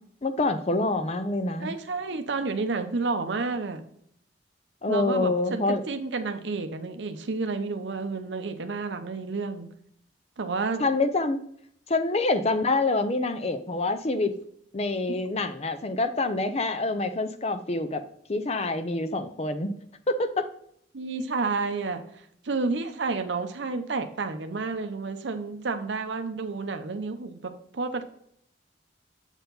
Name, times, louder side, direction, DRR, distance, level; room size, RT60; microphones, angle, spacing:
voice 1, 0.2-1.7 4.8-5.8 10.8-11.4 11.9-14.3 14.7-18.0 18.3-19.7 20.1-20.5, left 2 dB, 35° left, 10 dB, 0.6 m, -26 dB
voice 2, 1.6-3.8 4.9-9.7 10.4-10.9 15.1-15.2 20.9-22.0 22.4-28.0, right 3 dB, 75° right, 7 dB, 0.7 m, -30 dB
7.8 x 4.6 x 4.0 m, 0.68 s
head